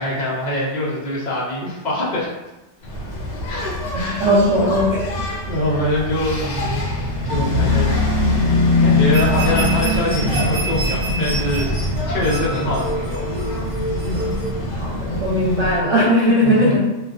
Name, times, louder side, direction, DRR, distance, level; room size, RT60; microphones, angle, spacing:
voice 1, 0.0-2.3 3.5-4.7 5.2-6.8 7.2-13.4 16.4-16.8, left 1 dB, 55° left, -5 dB, 0.5 m, -24 dB
Engine, 2.8-15.8, left 2 dB, 75° left, 0.9 m, -22 dB
voice 2, 3.9-5.2 14.7-16.8, equal, 80° right, -7 dB, 1.0 m, -18 dB
sound 1, 9.1-14.5, right 2 dB, 55° right, 0.8 m, -28 dB
2.3 x 2.3 x 2.3 m, 1.0 s
omnidirectional pair, 1.2 m